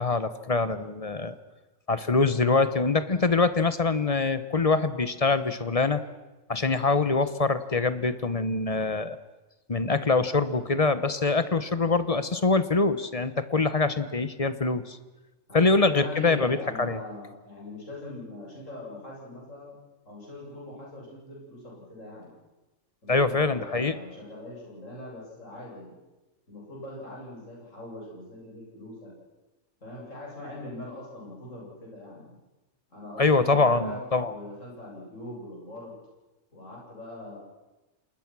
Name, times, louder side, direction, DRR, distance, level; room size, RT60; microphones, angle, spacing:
voice 1, 0.0-1.3 1.9-6.0 6.5-9.2 9.7-15.0 15.5-17.0 23.1-23.9 33.2-34.3, left 3 dB, 30° left, 13 dB, 0.9 m, -24 dB
voice 2, 15.5-19.8 20.0-22.3 23.0-25.9 26.5-29.1 29.8-32.4 32.9-35.9 36.5-37.4, left 2 dB, 70° left, -4 dB, 8.4 m, -41 dB
28.0 x 20.5 x 6.1 m, 1.1 s
omnidirectional pair, 1.4 m